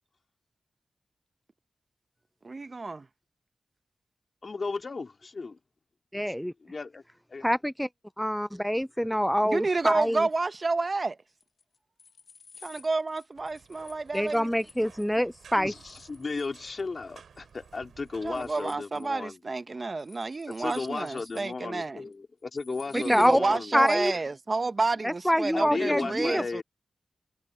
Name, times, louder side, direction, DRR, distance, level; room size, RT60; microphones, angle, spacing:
voice 1, 2.4-3.1 9.4-11.2 12.6-14.5 18.2-22.0 22.9-26.6, right 3 dB, 45° right, 1.0 m, -30 dB
voice 2, 4.4-5.6 6.6-7.0 7.3-7.5 15.5-19.4 20.6-23.9 25.5-26.6, left 4 dB, 55° left, 3.4 m, -35 dB
voice 3, 6.1-6.5 7.4-7.9 8.2-10.2 14.1-15.7 23.1-23.4 23.7-24.1 25.0-26.4, equal, ahead, 0.4 m, -25 dB
sound 1, 11.4-15.1 15.9-17.1 17.3-17.7 18.0-19.1 20.0-21.5 21.8-21.9 22.1-22.2 22.6-23.4 23.8-24.0, left 5 dB, 75° left, 2.3 m, -54 dB
sound 2, 13.3-18.5, right 6 dB, 85° right, 5.5 m, -54 dB
cardioid pair, 45°, 0 cm